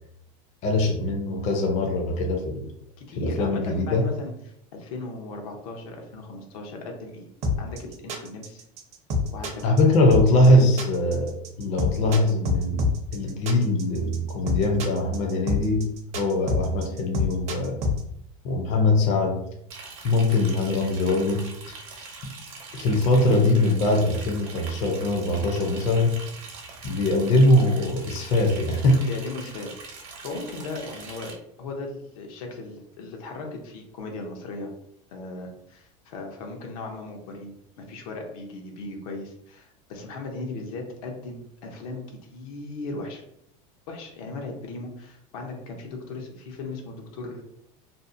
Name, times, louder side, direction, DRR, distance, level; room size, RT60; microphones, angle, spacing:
voice 1, 0.6-2.7 3.2-4.0 9.6-12.8 13.1-17.8 18.4-19.4 20.0-21.5 22.2-22.3 22.7-26.2 26.8-29.0, left 1 dB, 40° left, 1 dB, 0.5 m, -22 dB
voice 2, 3.0-4.3 4.7-7.3 7.6-8.6 9.3-9.9 10.5-10.6 29.0-31.3 31.6-34.7 35.1-43.2 43.9-47.4, left 3 dB, 80° left, 2 dB, 0.7 m, -37 dB
sound 1, 7.4-18.0, left 3 dB, 35° right, 0.5 m, -26 dB
Liquid, 19.7-31.3, right 4 dB, 65° right, 0.8 m, -42 dB
2.6 x 2.0 x 2.5 m, 0.75 s
supercardioid pair, 145°, 18 cm